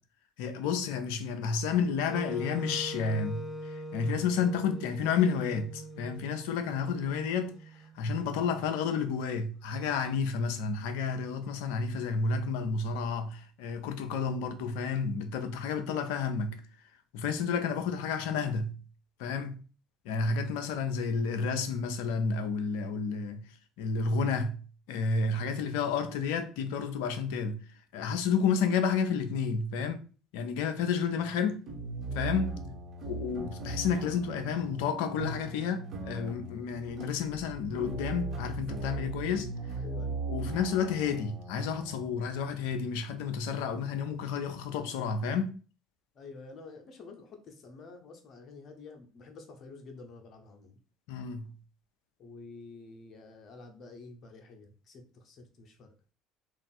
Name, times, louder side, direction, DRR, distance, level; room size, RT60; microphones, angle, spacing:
voice 1, 0.4-16.6 17.1-18.8 19.2-19.6 20.0-23.5 23.8-24.6 24.9-27.6 27.9-30.0 30.3-31.6 32.1-32.6 33.1-39.5 40.3-45.6 51.1-51.5, left 5 dB, 65° left, 0.5 m, -31 dB
Wind instrument woodwind instrument, 2.1-8.1, right 1 dB, 5° left, 0.9 m, -42 dB
sound 1, 31.7-44.5, right 3 dB, 45° right, 1.2 m, -39 dB
voice 2, 39.8-40.2 46.1-50.8 52.2-55.9, left 3 dB, 45° left, 0.8 m, -49 dB
3.4 x 2.5 x 4.0 m
figure-of-eight pair, 60°, 0 cm